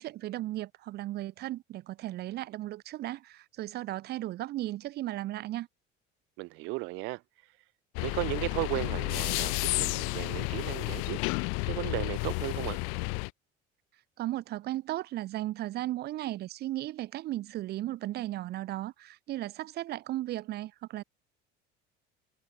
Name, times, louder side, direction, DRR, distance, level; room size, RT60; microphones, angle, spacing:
voice 1, 0.0-5.7 14.2-21.0, right 15 dB, 50° right, 5.0 m, -36 dB
voice 2, 6.4-7.2 8.0-11.2 11.6-12.8, right 24 dB, 70° right, 3.4 m, -35 dB
sound 1, 7.9-13.3, left 40 dB or more, 90° left, 1.1 m, -31 dB
cardioid pair, 155°, 20 cm